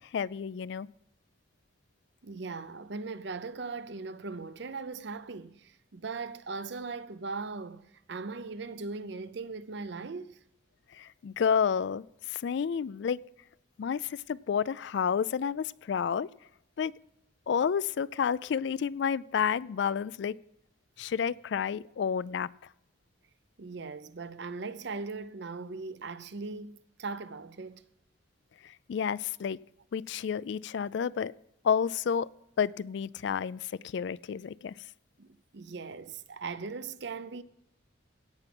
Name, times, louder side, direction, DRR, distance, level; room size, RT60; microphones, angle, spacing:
voice 1, 0.1-0.9 11.0-13.2 13.8-16.3 16.8-16.9 17.5-20.4 21.0-22.5 28.9-29.6 29.9-31.3 31.6-32.3 32.6-34.7, left 7 dB, 60° left, 0.3 m, -30 dB
voice 2, 2.2-10.4 23.6-27.8 35.2-37.4, right 4 dB, 60° right, 0.6 m, -39 dB
16.5 x 5.9 x 6.0 m
head